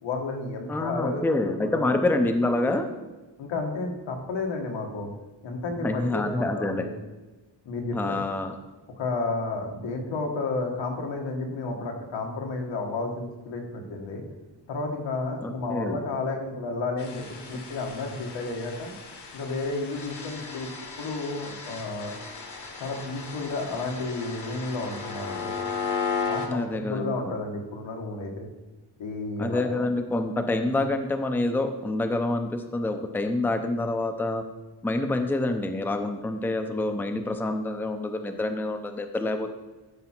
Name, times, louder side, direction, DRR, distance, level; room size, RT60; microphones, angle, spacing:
voice 1, 0.0-1.9 3.4-5.1 5.4-6.9 7.7-8.2 9.0-14.2 14.7-18.9 19.3-20.7 21.0-22.1 22.8-25.5 26.3-28.5 29.0-29.7, left 3 dB, 90° left, 1 dB, 1.7 m, -32 dB
voice 2, 0.7-2.9 5.8-6.9 7.9-8.5 15.4-16.0 26.5-27.3 29.4-34.4 34.8-39.5, left 2 dB, 5° left, 6 dB, 0.5 m, -27 dB
sound 1, 17.0-26.5, left 5 dB, 65° left, 1.3 m, -35 dB
12.0 x 4.8 x 4.4 m, 1.2 s
wide cardioid pair, 135°, 44 cm